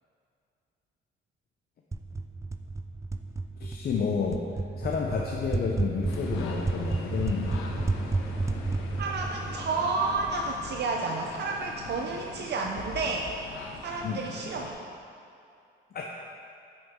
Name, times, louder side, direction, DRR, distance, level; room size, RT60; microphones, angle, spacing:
sound 1, 1.9-10.6, right 3 dB, 15° right, 0.3 m, -32 dB
voice 1, 3.6-4.5 4.8-7.8 14.0-14.2 15.9-16.1, left 6 dB, 50° left, 0 dB, 0.7 m, -30 dB
sound 2, 6.1-14.7, left 4 dB, 90° left, 0.9 m, -41 dB
voice 2, 9.0-13.3 13.8-14.8, right 3 dB, 60° right, 1 dB, 0.7 m, -31 dB
9.4 x 5.9 x 3.7 m, 2.5 s
cardioid pair, 90°, 20 cm